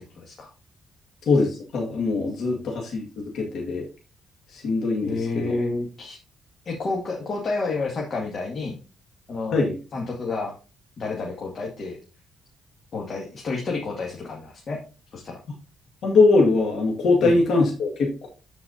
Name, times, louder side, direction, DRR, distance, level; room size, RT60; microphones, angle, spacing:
voice 1, 0.2-0.5 2.4-2.6 5.0-6.2 6.7-8.8 9.3-9.6 9.9-10.5 11.0-12.0 12.9-14.8 15.1-15.4 17.2-17.4, left 3 dB, 50° left, -1 dB, 2.0 m, -30 dB
voice 2, 1.3-3.8 4.5-5.5 9.5-9.7 16.0-18.3, left 3 dB, 70° left, 0 dB, 1.9 m, -22 dB
12.5 x 4.8 x 2.7 m, 0.32 s
cardioid pair, 90°, 0 cm